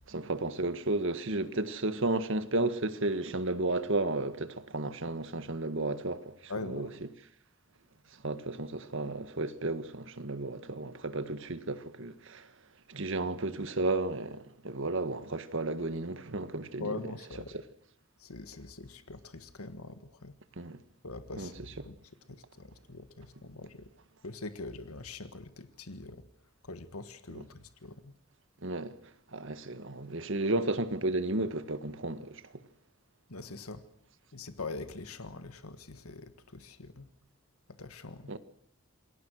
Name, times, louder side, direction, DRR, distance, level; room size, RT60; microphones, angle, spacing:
voice 1, 0.1-7.1 8.1-12.5 12.9-16.9 17.5-17.6 20.6-20.8 21.4-21.7 27.3-27.5 28.6-29.0 29.3-32.5 38.3-38.4, right 2 dB, 60° right, 1.6 m, -33 dB
voice 2, 6.5-6.9 16.8-17.5 18.2-20.3 21.0-22.0 22.3-23.9 24.2-26.2 26.6-28.1 33.3-33.8 34.3-37.1 37.8-38.3, left 3 dB, 85° left, 1.7 m, -43 dB
28.0 x 21.5 x 6.4 m
head